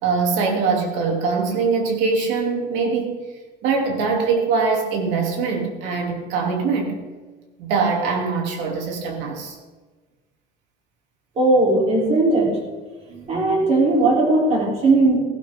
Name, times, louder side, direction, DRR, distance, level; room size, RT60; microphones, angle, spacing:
voice 1, 0.0-3.2 3.6-7.0 7.6-9.6 13.1-13.7, right 4 dB, 60° right, 1 dB, 2.9 m, -23 dB
voice 2, 11.4-12.6 13.3-15.2, right 2 dB, 30° right, -3 dB, 3.6 m, -18 dB
16.5 x 11.5 x 3.7 m, 1.3 s
cardioid pair, 165°, 21 cm